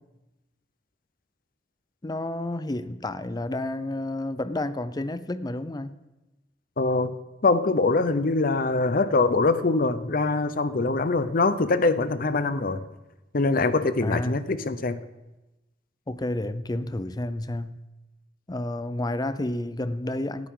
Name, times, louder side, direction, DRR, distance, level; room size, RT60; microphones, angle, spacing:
voice 1, 2.0-6.0 14.0-14.5 16.1-17.8 18.5-20.5, left 1 dB, 20° left, 13 dB, 0.6 m, -30 dB
voice 2, 6.8-7.1 7.4-12.8 13.3-15.0, left 3 dB, 50° left, 13 dB, 0.8 m, -23 dB
18.5 x 13.0 x 3.8 m, 1.0 s
head